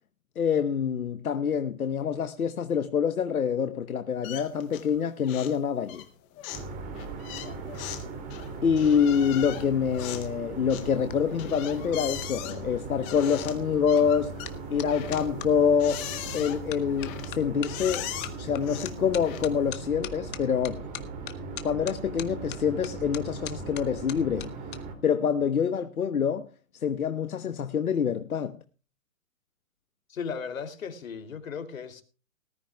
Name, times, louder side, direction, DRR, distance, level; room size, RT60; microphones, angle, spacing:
voice 1, 0.4-6.0 8.6-14.4 14.7-18.1 18.4-20.8 21.6-24.5 25.0-26.5 26.8-28.6, left 7 dB, 90° left, 1.2 m, -26 dB
sound 1, 4.2-5.0 5.2-5.6 5.9-19.7, left 12 dB, 10° left, 0.5 m, -40 dB
sound 2, 6.5-24.9, right 4 dB, 20° right, 2.7 m, -39 dB
voice 2, 7.3-7.6 30.1-32.0, left 6 dB, 70° left, 3.0 m, -37 dB
sound 3, 10.5-15.5 16.1-16.4 16.7-24.8 25.1-25.5, left 12 dB, 40° left, 1.4 m, -43 dB
19.5 x 13.5 x 2.3 m
hypercardioid pair, 150°, 42 cm